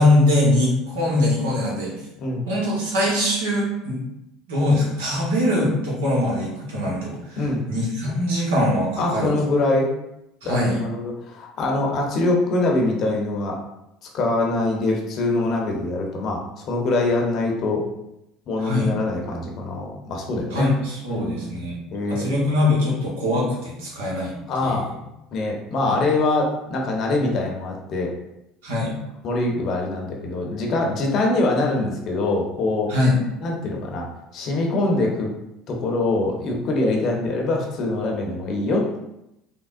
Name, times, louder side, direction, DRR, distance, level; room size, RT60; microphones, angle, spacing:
voice 1, 0.0-1.9 2.5-4.0 4.5-7.4 7.7-9.3 10.4-10.8 18.6-18.9 20.5-21.8 22.1-24.3 24.6-24.9 25.8-25.9 28.6-29.0 32.9-33.2, left 1 dB, 85° right, -4 dB, 1.0 m, -22 dB
voice 2, 9.0-9.9 10.4-13.6 14.1-17.8 18.5-20.7 21.1-21.5 21.9-22.3 24.5-25.0 25.3-28.1 29.2-32.9 33.4-34.1 34.3-35.3 35.7-39.0, left 2 dB, 55° left, 0 dB, 0.7 m, -23 dB
3.6 x 2.1 x 2.5 m, 0.87 s
hypercardioid pair, 75°, 0 cm